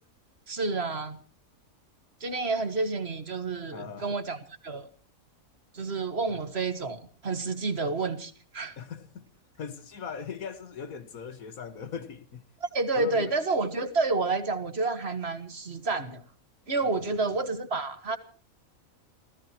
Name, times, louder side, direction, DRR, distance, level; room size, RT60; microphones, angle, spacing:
voice 1, 0.5-1.2 2.2-4.4 4.6-4.9 5.7-8.7 12.6-16.2 16.7-18.2, right 3 dB, 50° right, 2.0 m, -29 dB
voice 2, 3.7-4.2 6.3-6.4 8.8-9.3 9.6-12.5 13.0-13.3 16.8-17.4, left 6 dB, 85° left, 1.9 m, -39 dB
28.5 x 17.0 x 2.9 m
omnidirectional pair, 1.4 m